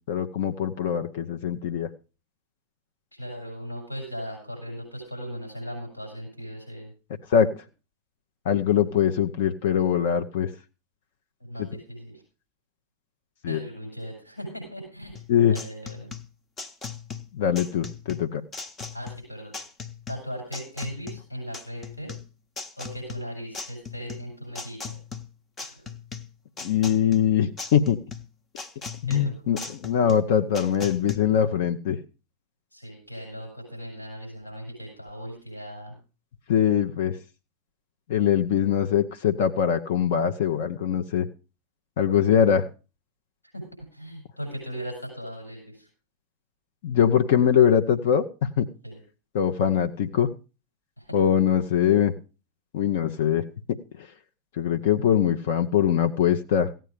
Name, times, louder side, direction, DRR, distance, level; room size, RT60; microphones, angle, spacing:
voice 1, 0.1-1.9 7.3-7.5 8.4-10.5 11.6-11.7 13.4-13.6 15.3-15.5 17.3-18.4 26.6-28.0 29.0-32.0 36.5-37.2 38.1-41.3 42.0-42.6 46.8-48.7 49.3-50.3 51.1-52.1 52.7-53.4 54.6-56.7, left 9 dB, 55° left, 7 dB, 0.8 m, -22 dB
voice 2, 3.1-6.9 11.4-12.1 13.5-15.2 15.5-16.1 18.9-19.5 20.1-22.2 22.8-25.0 25.7-25.9 29.1-29.3 32.7-36.0 43.5-43.6 43.9-45.9 48.8-49.0 51.0-51.2, equal, 90° left, 0 dB, 6.9 m, -38 dB
sound 1, 15.2-31.2, left 5 dB, 20° left, 1.0 m, -39 dB
15.5 x 9.0 x 5.0 m, 0.34 s
figure-of-eight pair, 90°, 0 cm